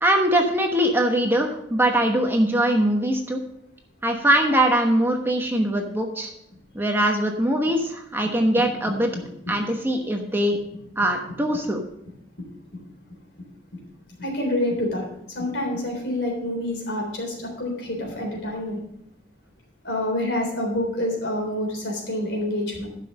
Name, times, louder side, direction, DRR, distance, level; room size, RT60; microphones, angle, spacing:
voice 1, 0.0-3.4 4.0-6.3 6.7-9.1 9.5-10.6 11.0-11.8, right 1 dB, 10° right, 2 dB, 1.1 m, -22 dB
voice 2, 9.1-9.5 12.4-12.5 12.7-12.8 13.7-13.8 14.2-18.8 19.8-22.9, left 1 dB, 75° left, 1 dB, 3.7 m, -27 dB
11.5 x 6.2 x 5.3 m, 0.77 s
head